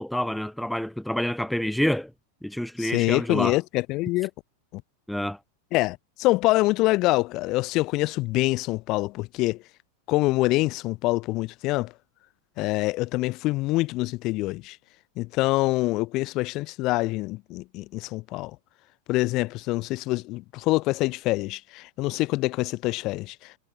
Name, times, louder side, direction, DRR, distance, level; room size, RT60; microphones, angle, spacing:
voice 1, 0.0-2.1 2.4-3.6 5.1-5.4, equal, ahead, 4.2 m, -27 dB
voice 2, 2.8-4.3 4.7-4.8 5.7-9.6 10.1-11.9 12.6-14.8 15.2-18.6 19.1-23.6, left 20 dB, 40° left, 5.4 m, -25 dB
figure-of-eight pair, 90°, 0 cm